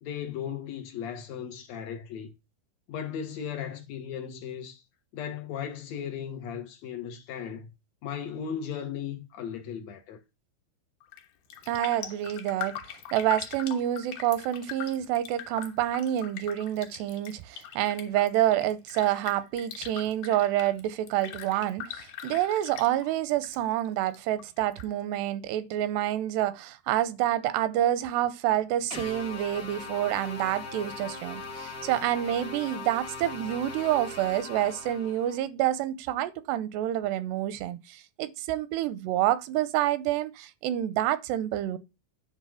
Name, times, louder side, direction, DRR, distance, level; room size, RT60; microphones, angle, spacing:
voice 1, 0.0-2.3 2.9-4.8 5.1-7.7 8.0-10.2, left 8 dB, 85° left, 1.5 m, -36 dB
Raindrop, 11.0-11.2 11.5-23.6 23.8-24.8 25.2-25.3, left 10 dB, 65° left, 2.4 m, -41 dB
voice 2, 11.7-41.8, right 13 dB, 85° right, 2.8 m, -28 dB
sound 1, 28.9-35.4, left 3 dB, 45° left, 1.2 m, -40 dB
9.9 x 3.7 x 6.2 m
omnidirectional pair, 4.8 m